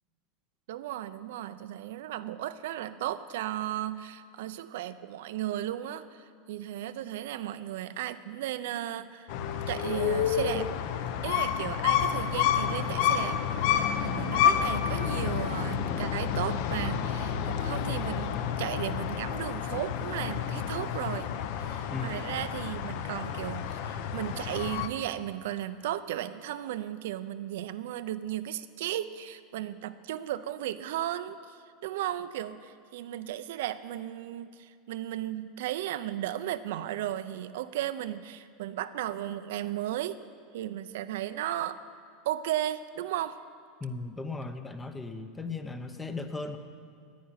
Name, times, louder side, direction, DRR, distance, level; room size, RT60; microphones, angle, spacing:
voice 1, 0.7-9.3 9.7-10.7 11.2-18.3 18.6-21.3 21.6-40.2 40.5-41.8 42.2-43.4, right 12 dB, 70° right, 12 dB, 0.5 m, -35 dB
sound 1, 9.3-24.9, left 8 dB, 50° left, 0.7 m, -29 dB
voice 2, 21.9-22.2 43.8-46.6, left 3 dB, 10° left, 8 dB, 0.6 m, -37 dB
10.5 x 10.0 x 9.6 m, 2.2 s
supercardioid pair, 175°, 0 cm